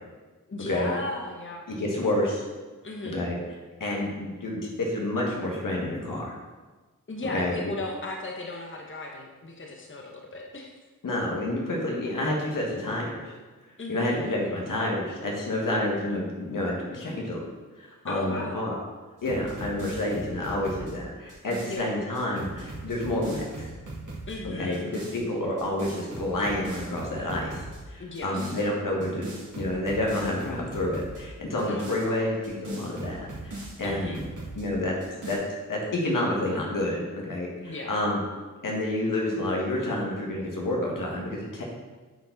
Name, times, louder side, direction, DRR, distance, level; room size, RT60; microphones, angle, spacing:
voice 1, 0.5-1.6 2.8-3.2 7.1-10.7 13.8-14.2 18.1-18.7 21.7-21.9 24.3-24.9 28.0-28.6 31.6-32.2 33.8-34.2 37.6-37.9, left 2 dB, 40° left, 0 dB, 1.0 m, -36 dB
voice 2, 1.7-2.4 3.1-3.4 3.8-6.3 7.3-7.6 11.0-13.2 13.9-17.4 17.8-18.7 19.2-23.7 24.4-29.3 29.6-34.1 34.6-35.0 35.2-35.4 35.7-38.2 38.6-41.6, left 1 dB, 75° left, -2 dB, 1.8 m, -29 dB
sound 1, 19.2-21.8 22.1-24.4 24.7-25.2 25.6-27.8 28.1-28.6 29.0-31.2 31.6-34.6 35.0-35.3, right 2 dB, 70° right, 2.5 m, -39 dB
9.1 x 4.6 x 4.0 m, 1.3 s
cardioid pair, 55°, 32 cm